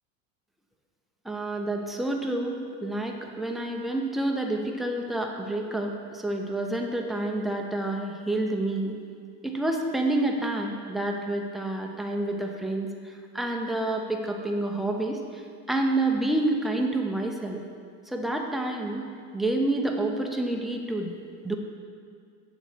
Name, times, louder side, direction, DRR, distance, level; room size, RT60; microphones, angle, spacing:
voice 1, 1.2-8.9 9.4-17.6 18.1-21.1 21.4-21.6, right 2 dB, ahead, 1 dB, 0.4 m, -28 dB
7.0 x 3.0 x 5.6 m, 2.2 s
hypercardioid pair, 85°, 43 cm